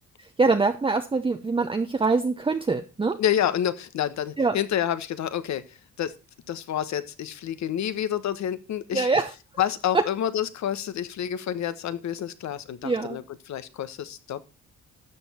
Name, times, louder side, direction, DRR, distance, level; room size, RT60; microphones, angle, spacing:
voice 1, 0.2-3.2 4.4-4.6 8.9-9.3 9.9-10.0 12.8-13.2, right 3 dB, 15° right, 6 dB, 0.8 m, -24 dB
voice 2, 3.2-6.1 6.5-9.1 9.6-14.4, left 10 dB, 65° left, 13 dB, 1.2 m, -28 dB
12.5 x 7.1 x 4.3 m, 0.30 s
cardioid pair, 90°, 30 cm